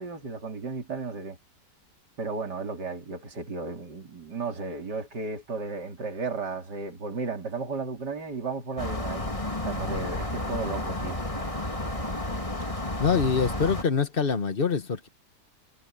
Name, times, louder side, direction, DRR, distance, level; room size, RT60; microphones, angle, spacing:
voice 1, 0.0-1.4 2.2-9.3 9.6-11.2, right 4 dB, 75° right, 3.9 m, -34 dB
sound 1, 8.8-13.8, left 1 dB, 20° left, 2.4 m, -31 dB
voice 2, 13.0-15.1, left 5 dB, 35° left, 1.3 m, -25 dB
omnidirectional pair, 1.8 m